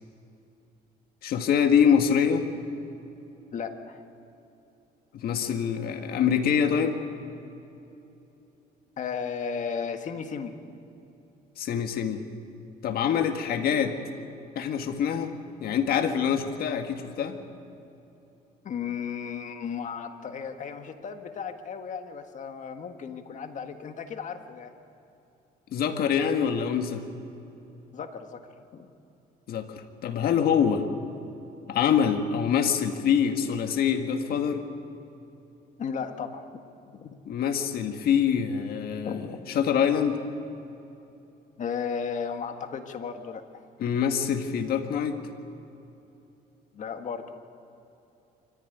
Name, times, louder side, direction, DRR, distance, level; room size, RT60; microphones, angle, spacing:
voice 1, 1.2-2.5 5.1-7.0 11.6-12.2 12.8-14.0 14.6-15.3 15.6-17.4 25.7-27.0 29.5-30.9 31.7-34.6 37.3-40.2 43.8-45.2, left 7 dB, 65° left, 6 dB, 1.8 m, -25 dB
voice 2, 3.5-4.0 9.0-10.5 18.6-24.7 27.9-28.4 28.7-28.9 35.8-36.4 36.9-37.1 39.0-39.6 41.6-43.6 46.7-47.3, left 6 dB, 45° left, 6 dB, 1.8 m, -35 dB
24.5 x 15.0 x 9.4 m, 2.9 s
cardioid pair, 110°, 17 cm